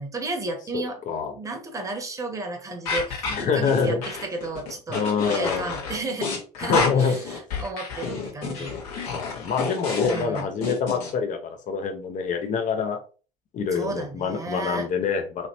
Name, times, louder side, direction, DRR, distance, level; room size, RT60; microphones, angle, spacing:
voice 1, 0.0-1.0 1.3-8.7 10.1-10.5 13.7-14.9, right 2 dB, 15° right, 3 dB, 1.1 m, -33 dB
voice 2, 0.7-1.4 3.3-4.0 4.9-5.8 6.6-7.2 8.6-8.7 9.1-13.0 13.5-15.5, left 5 dB, 40° left, 7 dB, 0.8 m, -26 dB
sound 1, 2.9-11.1, left 4 dB, 70° left, 1.3 m, -29 dB
3.1 x 2.9 x 2.7 m, 0.36 s
figure-of-eight pair, 65°, 20 cm